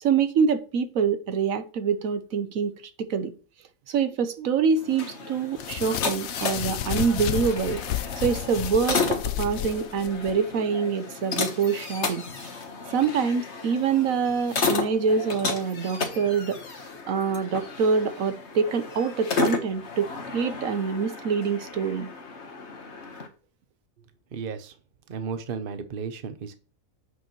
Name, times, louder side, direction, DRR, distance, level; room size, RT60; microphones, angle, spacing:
voice 1, 0.0-2.7 3.1-3.3 3.9-7.8 8.2-12.2 12.9-16.6 17.1-22.1, right 6 dB, 85° right, 1.3 m, -25 dB
sound 1, 4.8-23.3, left 4 dB, 55° left, 1.5 m, -33 dB
sound 2, 5.6-10.3, left 12 dB, 85° left, 1.1 m, -31 dB
voice 2, 24.3-24.7 25.1-26.6, right 6 dB, 45° right, 0.9 m, -34 dB
8.8 x 6.6 x 3.1 m
omnidirectional pair, 1.4 m